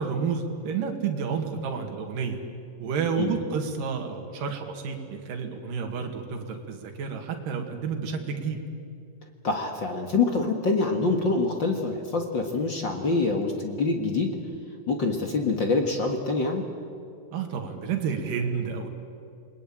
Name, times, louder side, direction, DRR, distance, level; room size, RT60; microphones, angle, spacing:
voice 1, 0.0-2.4 2.8-8.6 17.3-18.9, right 6 dB, 70° right, 3 dB, 3.7 m, -30 dB
voice 2, 9.4-14.4 14.9-16.7, left 3 dB, 40° left, 3 dB, 1.8 m, -25 dB
28.5 x 21.0 x 8.8 m, 2.5 s
omnidirectional pair, 4.1 m